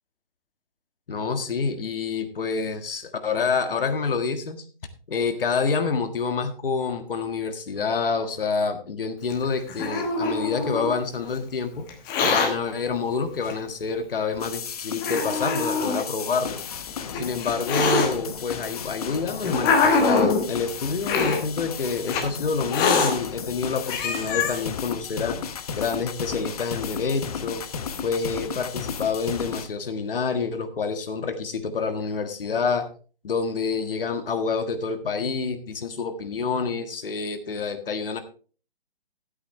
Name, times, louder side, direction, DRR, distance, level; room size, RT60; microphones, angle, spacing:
voice 1, 1.1-4.6 5.1-11.9 12.2-16.6 17.1-25.4 25.8-27.6 28.0-32.9 33.2-38.2, left 5 dB, 65° left, 8 dB, 1.7 m, -27 dB
Hiss, 9.3-11.0 11.9-12.5 13.5-13.6 14.4-14.5 15.0-16.0 16.9-18.1 18.9-20.4 21.0-21.4 22.1-22.2 22.7-23.1 23.6-23.7 23.9-24.6, left 4 dB, 15° left, 1.1 m, -23 dB
sound 1, 14.4-29.7, left 6 dB, 40° left, 0.9 m, -34 dB
13.5 x 8.6 x 3.3 m, 0.39 s
hypercardioid pair, 160°, 29 cm